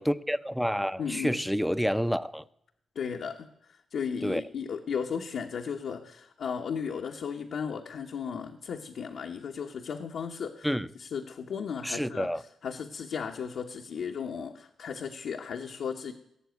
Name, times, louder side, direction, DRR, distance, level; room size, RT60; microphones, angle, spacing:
voice 1, 0.0-2.4 4.2-4.4 10.6-10.9 11.8-12.4, equal, ahead, 0.6 m, -28 dB
voice 2, 1.0-1.4 2.9-10.7 11.0-16.1, left 6 dB, 70° left, 1.0 m, -35 dB
16.5 x 6.9 x 9.3 m
cardioid pair, 85°, 0 cm